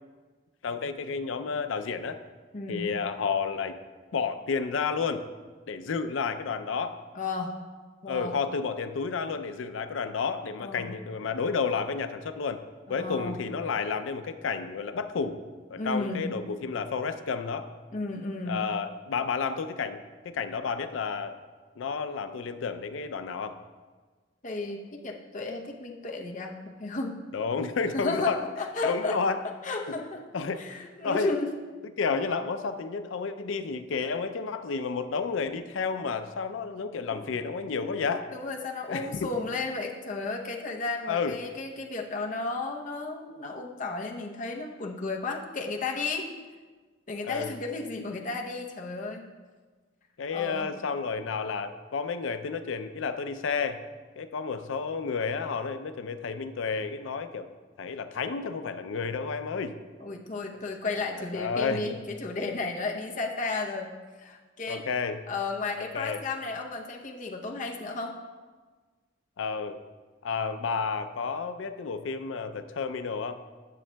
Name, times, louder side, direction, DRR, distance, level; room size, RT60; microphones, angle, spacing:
voice 1, 0.6-2.2 2.7-3.8 4.1-5.2 5.7-7.0 8.1-12.6 12.9-15.4 15.7-17.7 18.4-20.0 20.2-21.4 21.8-23.6 27.3-28.4 28.8-29.4 30.3-30.6 31.0-31.3 32.0-38.2 38.9-39.3 41.1-41.4 47.2-47.5 50.2-53.8 54.2-57.5 57.8-59.7 61.0-61.9 64.7-65.2 65.9-66.2 69.4-69.8 70.2-73.3, left 5 dB, 85° left, 10 dB, 0.4 m, -31 dB
voice 2, 2.5-2.9 7.1-7.5 8.0-8.4 10.6-10.9 12.9-13.4 15.8-16.3 17.9-18.6 24.4-27.2 27.9-29.2 29.4-30.2 30.6-31.5 37.1-37.5 37.8-38.0 38.3-46.3 47.1-49.3 50.3-50.7 60.0-63.9 64.2-64.8 65.3-68.2, left 3 dB, 40° left, 1 dB, 0.7 m, -33 dB
9.9 x 7.2 x 2.2 m, 1.4 s
head